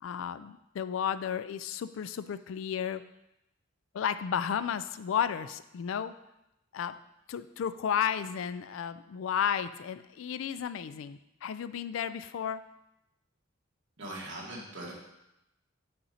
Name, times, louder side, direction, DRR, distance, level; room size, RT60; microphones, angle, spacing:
voice 1, 0.0-3.0 3.9-6.2 6.7-7.0 7.3-12.6, left 8 dB, 70° left, 13 dB, 0.3 m, -33 dB
voice 2, 14.0-14.9, right 1 dB, 60° right, -5 dB, 1.9 m, -40 dB
5.5 x 5.2 x 4.2 m, 0.89 s
head